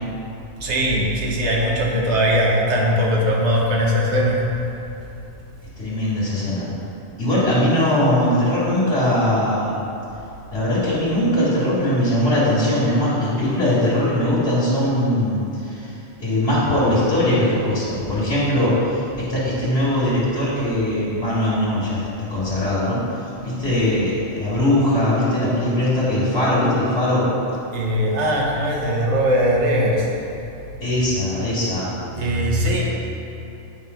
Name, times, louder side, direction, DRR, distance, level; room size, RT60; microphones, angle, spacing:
voice 1, 0.6-4.4 27.7-30.1 32.1-32.8, equal, 65° right, -2 dB, 1.4 m, -20 dB
voice 2, 5.8-6.7 7.2-9.8 10.5-27.3 30.8-31.9, left 1 dB, 55° left, -11 dB, 2.1 m, -20 dB
8.5 x 3.7 x 5.5 m, 2.8 s
omnidirectional pair, 1.3 m